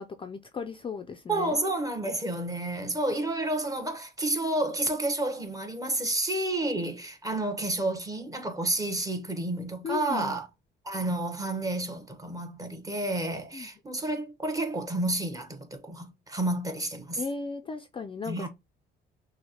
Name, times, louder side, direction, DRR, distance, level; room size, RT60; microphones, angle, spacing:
voice 1, 0.0-1.6 6.6-6.8 9.8-10.4 13.5-13.7 17.2-18.5, left 5 dB, 25° left, 0.4 m, -36 dB
voice 2, 1.3-10.5 10.8-17.2 18.3-18.5, right 2 dB, 15° right, 0.9 m, -30 dB
6.1 x 2.1 x 2.9 m
cardioid pair, 105°, 21 cm